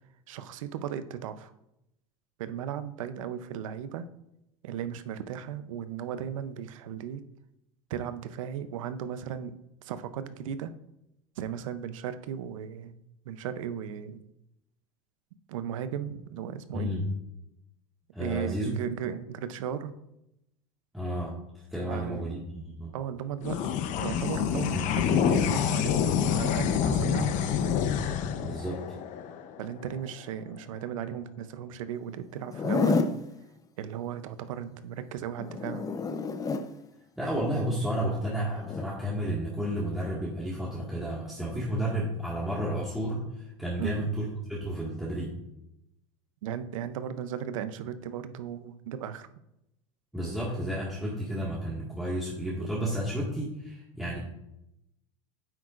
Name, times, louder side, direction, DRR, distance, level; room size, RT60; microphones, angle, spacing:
voice 1, 0.3-1.5 2.4-4.1 4.6-7.2 7.9-10.7 11.4-12.9 13.2-14.2 15.5-16.9 18.2-19.9 21.9-22.2 22.9-23.6 24.0-26.0 26.3-27.4 29.6-33.1 33.8-35.8 43.8-44.1 46.4-49.3, right 9 dB, 85° right, 12 dB, 0.7 m, -36 dB
voice 2, 16.7-17.1 18.1-18.7 20.9-21.4 21.7-22.9 24.7-24.9 28.4-28.8 37.2-45.3 50.1-54.2, equal, ahead, -6 dB, 1.9 m, -32 dB
sound 1, 23.4-30.1, left 8 dB, 50° left, 0.8 m, -27 dB
Zipper (clothing), 32.4-33.2 35.4-36.7 38.6-38.8, left 4 dB, 20° left, 0.6 m, -29 dB
9.3 x 7.9 x 2.5 m, 0.84 s
supercardioid pair, 115°, 16 cm